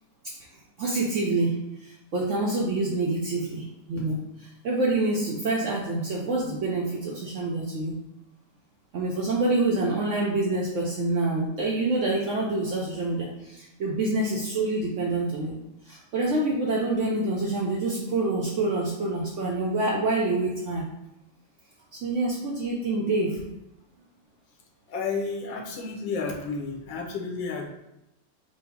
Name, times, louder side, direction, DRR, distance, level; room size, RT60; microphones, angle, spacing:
voice 1, 0.8-7.9 8.9-15.6 15.8-20.8 21.9-23.4, right 2 dB, 90° right, -4 dB, 0.6 m, -27 dB
voice 2, 24.9-27.7, left 4 dB, 80° left, -1 dB, 1.5 m, -31 dB
4.3 x 2.0 x 4.5 m, 0.90 s
omnidirectional pair, 2.0 m